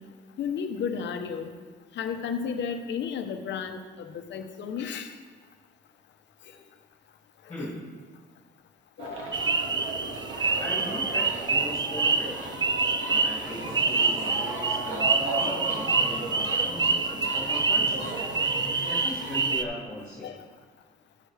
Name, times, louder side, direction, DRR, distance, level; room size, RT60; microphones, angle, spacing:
voice 1, 0.4-1.5 2.0-5.1 7.6-7.7 9.0-9.2 20.2-20.4, left 6 dB, 65° left, 6 dB, 0.9 m, -33 dB
voice 2, 7.5-8.0 10.6-12.3 13.1-18.1 18.5-20.3, left 1 dB, 20° left, -7 dB, 2.5 m, -39 dB
sound 1, 9.0-19.5, right 2 dB, 70° right, 1.9 m, -35 dB
sound 2, 9.3-19.6, right 4 dB, 20° right, 0.4 m, -26 dB
11.5 x 6.3 x 3.3 m, 1.5 s
cardioid pair, 90°, 20 cm